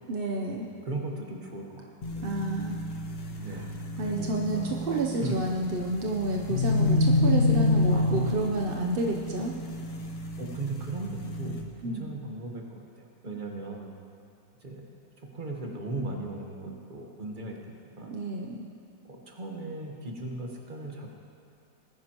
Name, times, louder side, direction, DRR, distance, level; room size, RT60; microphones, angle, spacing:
voice 1, 0.1-0.7 2.2-2.8 4.0-9.5 11.8-12.1 18.1-18.6, right 2 dB, 55° right, 0 dB, 0.6 m, -30 dB
voice 2, 0.8-1.9 2.1-2.2 3.4-3.7 4.0-4.8 5.2-5.4 7.9-8.4 10.4-14.0 14.6-14.9 15.3-17.6 17.8-18.2 19.1-21.1, right 2 dB, 30° right, 0 dB, 1.3 m, -37 dB
sound 1, 2.0-11.6, left 2 dB, 40° left, 0.9 m, -29 dB
19.0 x 10.0 x 3.0 m, 2.4 s
omnidirectional pair, 1.9 m